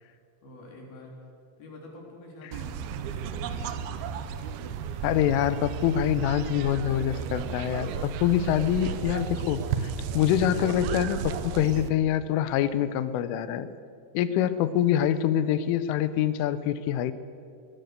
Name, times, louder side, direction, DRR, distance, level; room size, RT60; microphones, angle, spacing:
voice 1, 0.4-1.2 1.6-3.8, left 2 dB, 50° left, -1 dB, 5.2 m, -47 dB
sound 1, 2.5-11.9, right 7 dB, 85° right, 2.1 m, -33 dB
voice 2, 5.0-13.7 14.1-17.1, left 10 dB, 80° left, 13 dB, 3.3 m, -25 dB
22.5 x 20.5 x 6.7 m, 2.3 s
omnidirectional pair, 5.8 m